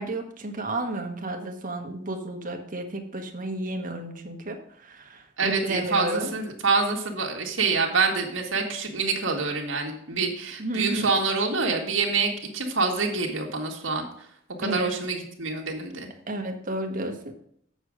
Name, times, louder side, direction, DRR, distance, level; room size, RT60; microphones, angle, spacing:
voice 1, 0.0-6.3 10.6-11.1 14.6-15.0 16.3-17.3, right 2 dB, 45° right, 4 dB, 1.4 m, -32 dB
voice 2, 5.4-14.0 14.6-16.1, right 4 dB, 80° right, 0 dB, 1.9 m, -26 dB
8.1 x 6.8 x 5.0 m, 0.67 s
head